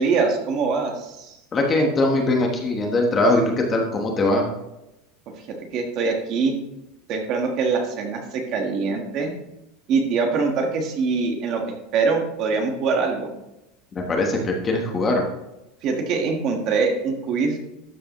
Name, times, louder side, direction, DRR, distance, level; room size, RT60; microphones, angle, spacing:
voice 1, 0.0-1.4 5.7-6.6 7.1-9.3 9.9-11.6 11.9-13.3 15.8-17.6, right 4 dB, 35° right, 3 dB, 1.4 m, -23 dB
voice 2, 1.5-4.4 13.9-15.2, left 2 dB, 15° left, 1 dB, 1.2 m, -21 dB
12.5 x 7.7 x 3.1 m, 0.92 s
supercardioid pair, 180°, 0 cm